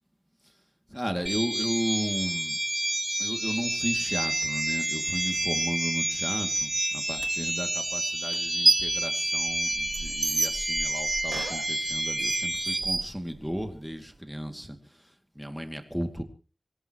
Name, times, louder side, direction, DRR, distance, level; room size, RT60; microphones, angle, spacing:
voice 1, 0.9-2.6 3.2-16.2, equal, ahead, 5 dB, 2.3 m, -34 dB
sound 1, 1.3-12.8, right 1 dB, 25° right, 2.6 m, -29 dB
sound 2, 7.2-7.3 8.3-9.0 9.4-13.7, right 3 dB, 50° right, 1.3 m, -29 dB
25.5 x 17.0 x 3.0 m, 0.36 s
wide cardioid pair, 90°, 0 cm